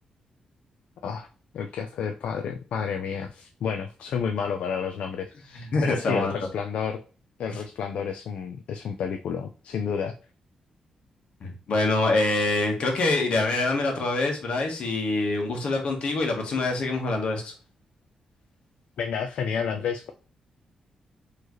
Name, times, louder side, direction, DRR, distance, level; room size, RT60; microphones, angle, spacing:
voice 1, 1.5-7.0 7.4-10.2 19.0-20.1, left 6 dB, 75° left, 6 dB, 0.4 m, -30 dB
voice 2, 5.7-6.3 7.5-7.6 11.4-17.5, left 2 dB, 60° left, 2 dB, 1.2 m, -25 dB
4.5 x 3.1 x 3.0 m, 0.37 s
wide cardioid pair, 140°, 2 cm